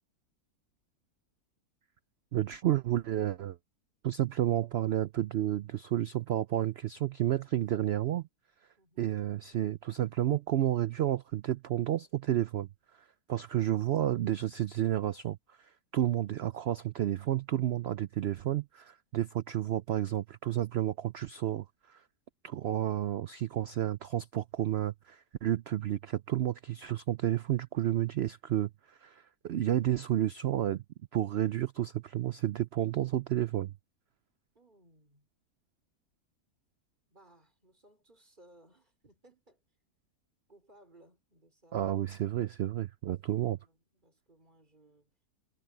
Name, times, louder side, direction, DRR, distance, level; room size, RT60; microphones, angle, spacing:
voice 1, 2.3-3.6 4.0-8.3 9.0-12.7 13.3-22.0 22.4-30.8 31.1-33.7 41.7-43.6, right 12 dB, 80° right, 0.5 m, -31 dB
voice 2, 8.8-9.2 34.5-35.3 37.1-39.6 40.5-41.9 42.6-42.9 43.2-45.1, right 1 dB, 30° right, 4.8 m, -62 dB
omnidirectional pair, 1.7 m